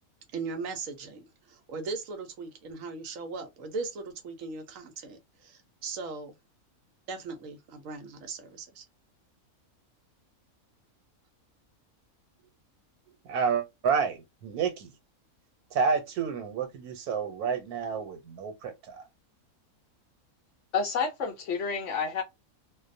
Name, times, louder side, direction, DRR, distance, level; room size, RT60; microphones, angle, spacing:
voice 1, 0.3-6.3 7.1-8.8, right 4 dB, 70° right, 1.0 m, -38 dB
voice 2, 13.2-14.9 15.7-19.0, right 6 dB, 90° right, 1.2 m, -29 dB
voice 3, 20.7-22.2, left 5 dB, 65° left, 0.8 m, -29 dB
2.6 x 2.0 x 2.5 m
omnidirectional pair, 1.5 m